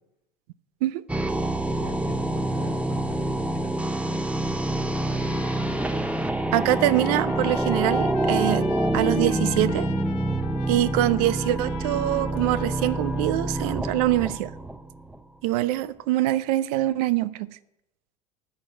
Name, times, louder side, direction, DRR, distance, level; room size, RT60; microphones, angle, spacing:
sound 1, 1.1-15.2, right 1 dB, 5° right, 0.6 m, -27 dB
voice 1, 1.6-3.8, left 5 dB, 45° left, 1.8 m, -42 dB
Trumpet, 4.7-13.3, left 10 dB, 75° left, 1.1 m, -43 dB
voice 2, 6.5-8.7 8.9-9.9 10.7-14.5 15.4-17.6, right 15 dB, 70° right, 0.5 m, -24 dB
12.0 x 4.5 x 7.9 m
hypercardioid pair, 80°, 21 cm